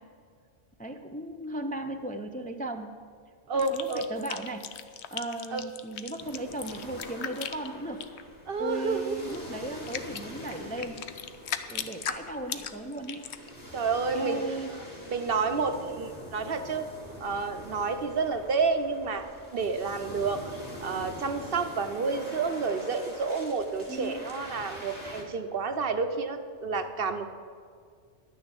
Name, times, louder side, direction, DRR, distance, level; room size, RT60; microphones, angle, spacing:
voice 1, 0.8-2.9 3.5-4.6 5.1-8.0 8.6-11.0 11.7-13.3 14.1-14.7 23.9-24.3, right 1 dB, 10° left, 4 dB, 0.5 m, -36 dB
voice 2, 3.5-4.0 5.5-5.6 8.5-9.4 13.7-14.4 15.1-16.9 17.2-19.3 19.5-27.3, right 4 dB, 55° right, 8 dB, 0.9 m, -30 dB
sound 1, 3.6-8.2 9.3-9.4 9.9-13.5, left 9 dB, 75° left, 0.9 m, -37 dB
sound 2, 6.2-25.2, left 1 dB, 35° left, 2.1 m, -44 dB
11.5 x 6.4 x 8.6 m, 2.1 s
omnidirectional pair, 1.2 m